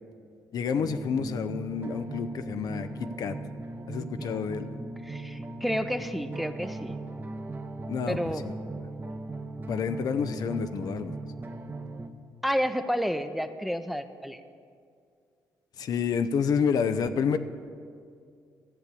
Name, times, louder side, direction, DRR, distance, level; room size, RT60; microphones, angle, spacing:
voice 1, 0.5-2.9 3.2-3.3 3.9-4.7 7.9-8.2 8.4-8.5 9.7-11.2 15.8-17.4, left 6 dB, 65° left, 10 dB, 0.6 m, -29 dB
sound 1, 0.8-12.1, right 2 dB, 25° right, 0.9 m, -38 dB
voice 2, 4.0-4.4 5.0-7.0 8.1-8.5 12.4-14.4, equal, ahead, 9 dB, 0.7 m, -31 dB
13.5 x 6.7 x 8.2 m, 2.3 s
supercardioid pair, 65°, 7 cm